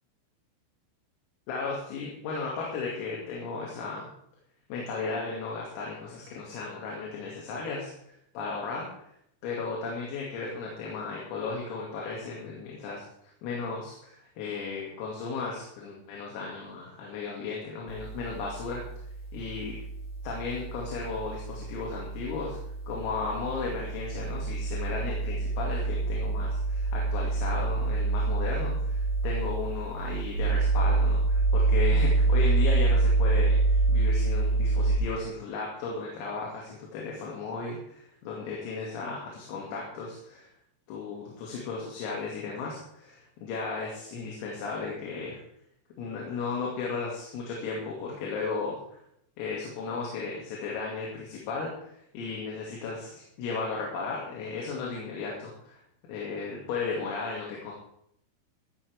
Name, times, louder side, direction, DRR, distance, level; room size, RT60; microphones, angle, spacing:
voice 1, 1.5-4.1 4.7-8.9 9.4-13.0 13.4-18.8 19.3-19.8 20.2-22.6 22.9-40.5 40.9-45.4 46.0-48.8 49.4-55.8 56.1-57.7, left 4 dB, 85° left, -3 dB, 5.1 m, -35 dB
sound 1, 17.9-35.0, right 3 dB, 20° left, 5.1 m, -27 dB
14.5 x 14.0 x 3.5 m, 0.71 s
omnidirectional pair, 5.9 m